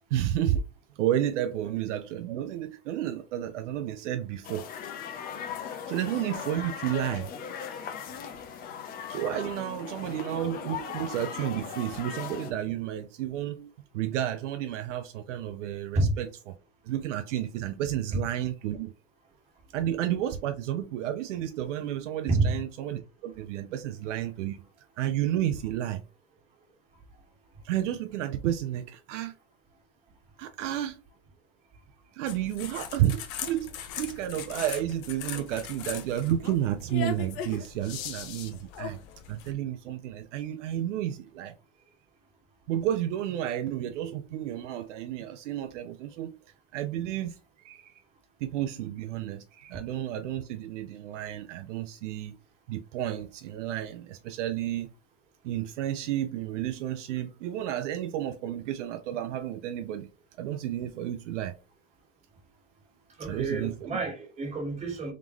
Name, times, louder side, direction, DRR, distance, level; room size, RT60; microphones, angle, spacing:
voice 1, 0.1-0.6 1.0-4.6 5.9-7.3 9.1-16.3 16.9-18.9 19.7-24.6 25.0-26.0 27.6-29.3 30.4-31.0 32.1-39.0 39.3-41.5 42.7-46.4 46.7-47.3 47.6-47.9 48.4-52.4 52.7-54.9 55.4-60.1 60.4-61.6 63.2-63.9, right 11 dB, 70° right, 0.6 m, -31 dB
sound 1, 4.4-12.5, left 7 dB, 25° left, 0.5 m, -38 dB
sound 2, 32.3-39.5, left 7 dB, 45° left, 0.9 m, -39 dB
voice 2, 63.2-65.1, right 3 dB, 15° right, 1.7 m, -28 dB
3.8 x 3.6 x 3.0 m
supercardioid pair, 145°, 38 cm